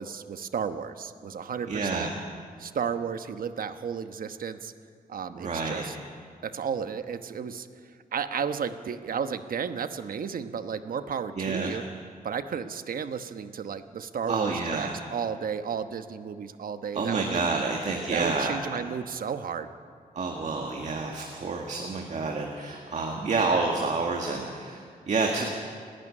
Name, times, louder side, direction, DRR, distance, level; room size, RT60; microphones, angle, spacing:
voice 1, 0.0-2.1 2.6-4.7 5.1-6.0 6.4-7.7 8.1-11.8 12.2-17.7 18.1-19.7, right 7 dB, 70° right, 9 dB, 1.1 m, -33 dB
voice 2, 1.7-2.1 5.3-5.9 11.4-11.8 14.3-15.0 16.9-18.6 20.1-25.4, right 4 dB, 50° right, 1 dB, 2.0 m, -29 dB
30.0 x 12.0 x 9.9 m, 2.1 s
wide cardioid pair, 155°, 15 cm